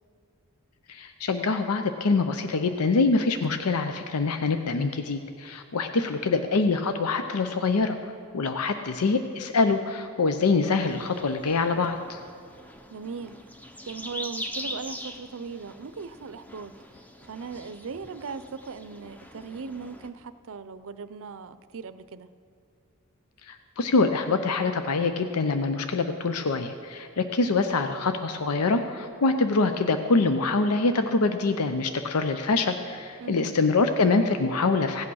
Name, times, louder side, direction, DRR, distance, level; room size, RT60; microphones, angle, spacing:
voice 1, 0.9-12.2 23.5-35.0, left 3 dB, 85° left, 8 dB, 0.6 m, -25 dB
sound 1, 10.8-20.1, equal, 5° left, 0.6 m, -42 dB
voice 2, 12.9-13.4 13.9-16.7 17.2-22.3 33.2-33.5, right 5 dB, 65° right, 13 dB, 0.5 m, -38 dB
16.0 x 8.5 x 6.3 m, 2.4 s
head